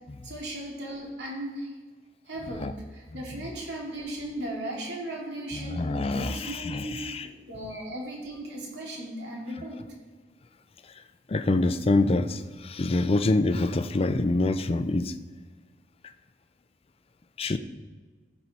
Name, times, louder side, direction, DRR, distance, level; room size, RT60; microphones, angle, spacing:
voice 1, 0.2-1.7 2.3-9.8, right 1 dB, 75° right, -2 dB, 2.6 m, -37 dB
voice 2, 3.1-3.5 5.5-7.3 10.8-11.0 11.3-15.2 17.4-17.6, left 2 dB, 35° left, 11 dB, 0.5 m, -26 dB
14.5 x 5.5 x 4.2 m, 1.4 s
head